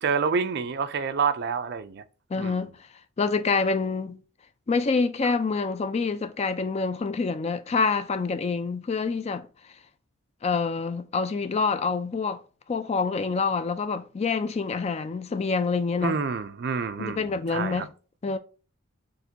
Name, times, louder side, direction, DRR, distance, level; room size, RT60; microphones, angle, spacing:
voice 1, 0.0-2.0 2.4-2.6 16.0-17.9, right 5 dB, 50° right, 0.4 m, -28 dB
voice 2, 2.3-2.7 3.2-4.2 4.7-9.5 10.4-12.4 12.7-16.2 17.0-17.9 18.2-18.4, left 4 dB, 30° left, 0.3 m, -26 dB
6.5 x 2.2 x 2.7 m
head